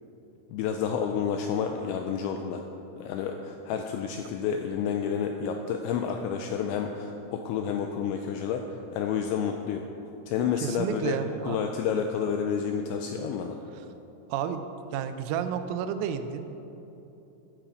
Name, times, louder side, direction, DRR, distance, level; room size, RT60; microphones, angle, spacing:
voice 1, 0.5-2.6 3.0-9.8 10.3-13.6, left 7 dB, 90° left, 4 dB, 2.6 m, -30 dB
voice 2, 10.6-11.6 14.3-14.6 14.9-16.4, right 8 dB, 85° right, 9 dB, 3.4 m, -31 dB
15.0 x 9.0 x 5.0 m, 3.0 s
omnidirectional pair, 5.9 m